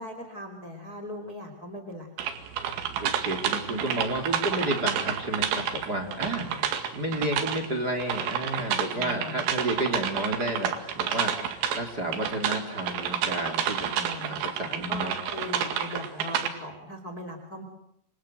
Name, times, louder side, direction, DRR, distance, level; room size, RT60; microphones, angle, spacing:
voice 1, 0.0-2.1 6.2-6.6 8.9-9.4 13.9-17.6, equal, 20° left, 7 dB, 3.2 m, -39 dB
sound 1, 2.2-16.5, right 8 dB, 70° right, 4.2 m, -30 dB
voice 2, 3.0-13.9 14.3-15.2, right 1 dB, 25° right, 5 dB, 2.8 m, -31 dB
28.5 x 26.0 x 7.9 m, 0.76 s
omnidirectional pair, 5.6 m